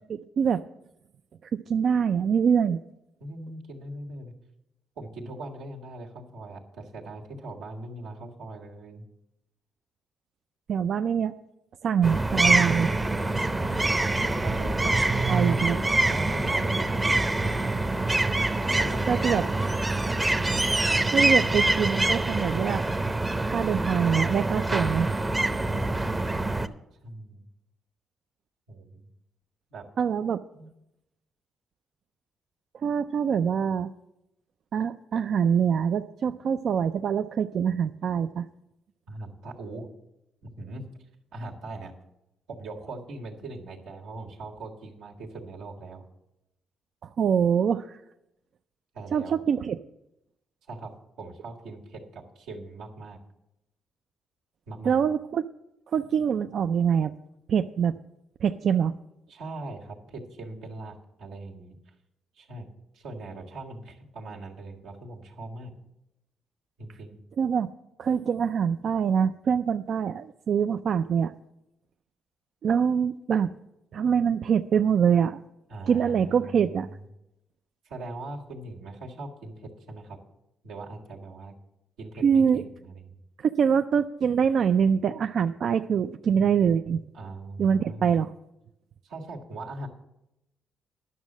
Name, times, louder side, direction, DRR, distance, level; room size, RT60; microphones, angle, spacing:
voice 1, 0.1-0.6 1.5-2.8 10.7-11.3 11.8-12.9 15.3-15.8 19.1-19.4 20.8-22.9 23.5-25.1 30.0-30.4 32.7-33.9 34.7-38.5 47.0-48.0 49.1-49.8 54.8-55.5 55.9-57.2 57.5-58.0 58.4-58.9 67.4-67.7 68.0-71.3 72.6-73.5 73.9-75.4 75.9-76.9 82.2-82.6 83.4-87.0 87.6-88.3, right 7 dB, 60° right, 8 dB, 0.3 m, -24 dB
voice 2, 3.2-4.3 5.0-9.1 13.4-15.6 16.1-17.4 18.8-19.7 27.0-27.5 28.7-29.1 29.7-29.9 30.5-30.7 39.1-39.9 40.4-40.9 41.3-41.9 42.5-46.1 48.9-49.3 50.7-53.2 54.7-55.0 59.3-61.8 62.4-62.7 62.9-65.7 66.8-67.2 75.7-77.0 77.8-80.2 80.6-81.5 82.0-83.0 87.1-88.2 89.0-89.9, right 2 dB, 90° right, -1 dB, 1.8 m, -40 dB
sound 1, 12.0-26.7, right 2 dB, 15° right, 0.6 m, -25 dB
11.0 x 6.3 x 7.3 m, 0.88 s
cardioid pair, 90°, 0 cm